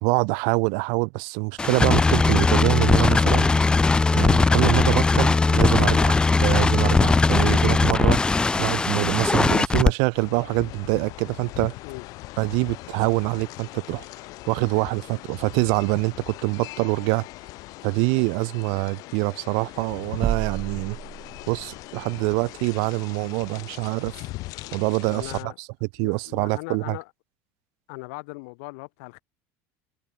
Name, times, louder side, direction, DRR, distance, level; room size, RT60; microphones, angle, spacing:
voice 1, 0.0-3.5 4.1-8.2 8.6-11.7 12.4-14.0 14.5-17.3 17.8-21.0 21.5-24.1 24.7-25.3 25.6-27.0, right 40 dB or more, 70° right, 0.6 m, -25 dB
sound 1, 1.6-9.9, left 3 dB, 10° left, 0.7 m, -19 dB
sound 2, 10.1-25.4, left 20 dB, 60° left, 2.6 m, -40 dB
sound 3, 20.2-21.8, right 8 dB, 30° right, 2.7 m, -30 dB
voice 2, 25.0-25.6 26.0-27.1 27.9-29.2, left 30 dB, 80° left, 1.7 m, -39 dB
supercardioid pair, 130°, 7 cm